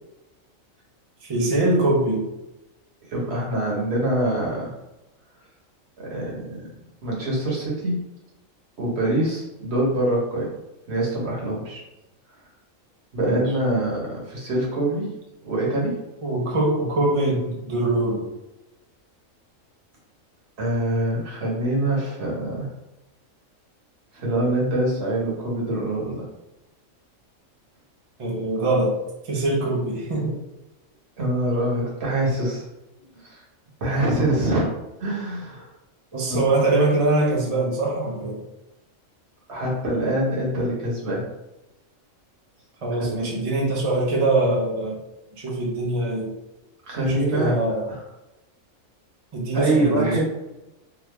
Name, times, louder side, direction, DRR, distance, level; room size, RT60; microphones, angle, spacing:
voice 1, 1.2-2.2 13.2-13.4 16.2-18.3 28.2-29.0 29.3-30.3 36.1-38.4 42.8-45.0 45.4-46.3 47.0-47.9 49.3-50.2, right 2 dB, 40° right, -2 dB, 0.5 m, -23 dB
voice 2, 3.1-4.8 6.0-6.6 7.0-8.0 8.8-10.5 10.9-11.8 13.1-15.1 15.5-16.0 20.6-22.7 24.1-26.2 31.2-32.6 33.1-33.4 33.8-34.7 35.0-35.7 39.5-41.2 43.1-43.2 46.8-47.5 47.9-48.0 49.5-50.2, right 1 dB, 55° right, -3 dB, 1.2 m, -24 dB
3.1 x 2.3 x 3.2 m, 0.94 s
omnidirectional pair, 1.4 m